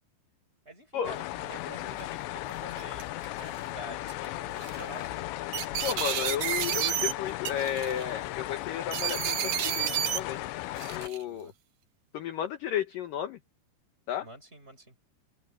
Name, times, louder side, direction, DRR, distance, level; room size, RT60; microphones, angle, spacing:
voice 1, 0.6-5.3 11.2-11.5 14.2-15.0, right 1 dB, 15° right, 5.8 m, -47 dB
sound 1, 1.0-11.1, left 16 dB, 85° left, 3.0 m, -36 dB
sound 2, 2.0-2.1 2.7-3.3 4.1-4.3 4.6-4.8 5.5-7.1 7.4-8.0 8.9-10.2 10.8-11.2, right 12 dB, 65° right, 2.2 m, -30 dB
voice 2, 5.8-10.4 10.8-11.5 12.1-13.4 14.1-14.3, left 9 dB, 65° left, 2.3 m, -33 dB
open air
omnidirectional pair, 5.1 m